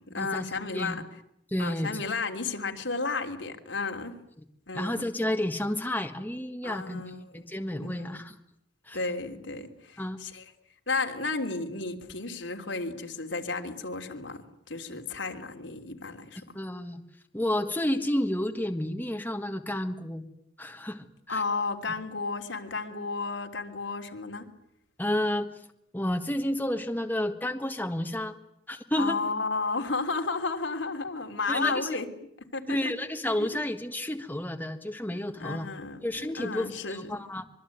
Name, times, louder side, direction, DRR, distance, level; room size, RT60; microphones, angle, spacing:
voice 1, 0.1-1.0 1.6-4.1 4.7-5.1 6.6-7.2 7.8-8.2 8.9-10.4 10.9-14.4 14.7-16.4 21.3-24.5 29.0-32.1 32.5-32.8 33.4-33.5 35.1-36.0 36.4-37.2, left 3 dB, 80° left, 4 dB, 3.3 m, -33 dB
voice 2, 1.5-2.0 4.7-8.4 8.9-9.0 10.0-10.2 16.5-17.0 17.3-20.3 20.6-21.4 25.0-25.5 25.9-28.3 28.7-29.2 31.5-32.0 32.7-35.7 36.0-37.4, left 1 dB, 10° left, 6 dB, 1.6 m, -31 dB
25.0 x 23.5 x 9.4 m, 0.76 s
head